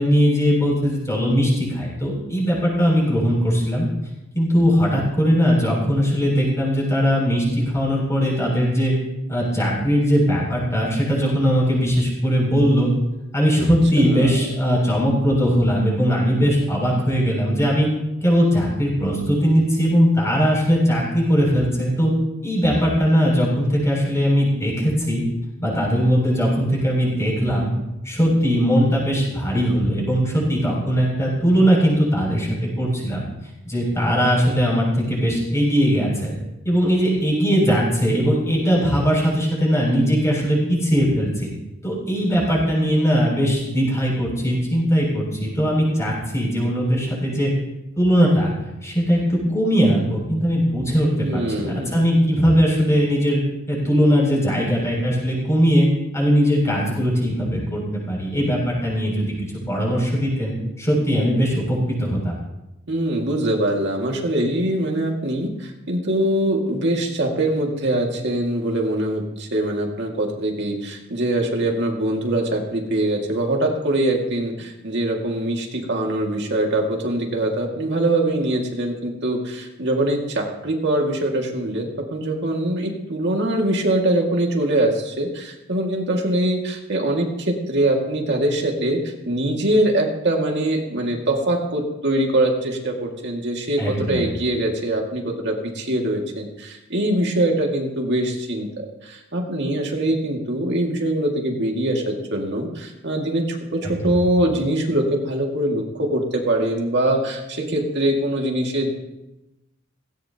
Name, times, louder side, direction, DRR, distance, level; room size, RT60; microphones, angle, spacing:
voice 1, 0.0-3.9 4.3-7.4 7.7-8.9 9.3-12.9 13.3-17.9 18.2-22.1 22.4-25.2 25.6-27.7 28.0-32.5 32.8-33.2 33.6-36.3 36.6-41.5 41.8-47.5 48.0-48.5 48.8-53.4 53.7-55.9 56.1-57.8 58.1-59.3 59.7-62.4 93.8-94.2 103.8-104.2, equal, 15° left, -4 dB, 6.9 m, -20 dB
voice 2, 14.0-14.5 51.2-51.9 62.9-108.9, right 1 dB, 60° right, 0 dB, 2.2 m, -23 dB
18.0 x 17.0 x 2.9 m, 0.95 s
head